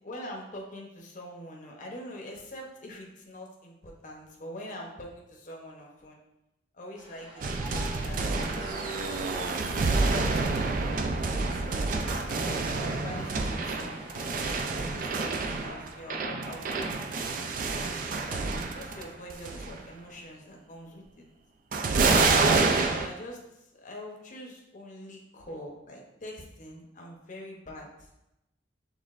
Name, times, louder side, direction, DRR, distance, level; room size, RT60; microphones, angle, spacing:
voice 1, 0.0-6.2 6.7-9.4 10.0-14.0 14.7-17.0 17.8-17.9 18.3-18.5 18.7-21.3 22.7-27.9, left 1 dB, 40° left, -1 dB, 0.7 m, -44 dB
Ocean, 7.0-15.4, right 1 dB, 30° right, 0.8 m, -48 dB
sound 1, 7.4-19.0 19.3-19.8 21.7-23.1, right 3 dB, 45° right, 0.4 m, -28 dB
6.5 x 3.4 x 2.4 m, 0.91 s
head